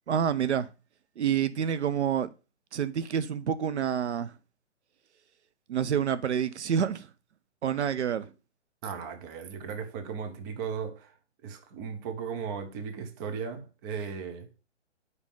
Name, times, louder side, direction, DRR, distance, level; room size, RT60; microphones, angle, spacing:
voice 1, 0.1-0.7 1.2-2.3 2.7-4.3 5.7-7.1 7.6-8.3, right 8 dB, 70° right, 0.7 m, -28 dB
voice 2, 8.8-11.1 11.4-14.5, right 6 dB, 20° right, 0.6 m, -36 dB
5.4 x 4.8 x 5.2 m
hypercardioid pair, 140°, 35 cm